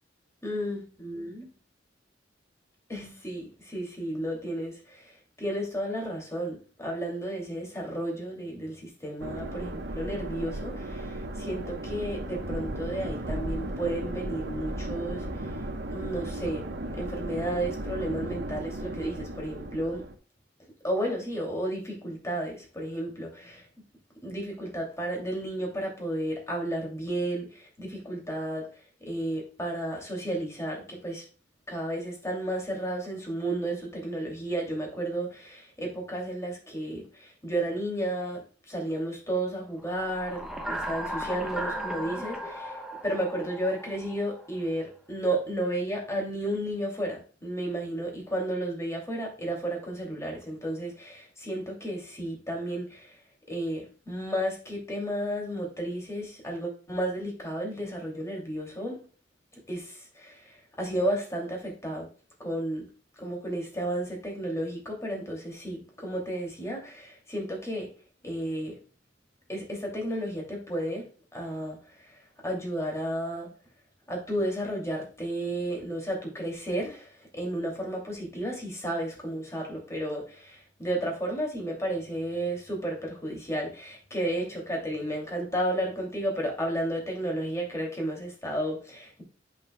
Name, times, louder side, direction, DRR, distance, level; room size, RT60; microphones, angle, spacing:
voice 1, 0.4-1.4 2.9-15.6 15.9-16.6 16.9-20.0 20.8-23.7 24.2-28.7 29.0-31.2 31.7-42.8 43.0-53.2 53.5-59.0 59.7-62.1 62.4-62.9 63.2-67.9 68.2-68.8 69.5-73.5 74.1-89.2, right 1 dB, 15° left, 2.6 m, -33 dB
sound 1, 9.2-20.1, right 1 dB, 65° right, 1.1 m, -35 dB
sound 2, 39.9-44.5, equal, ahead, 1.0 m, -36 dB
7.9 x 6.6 x 2.3 m
head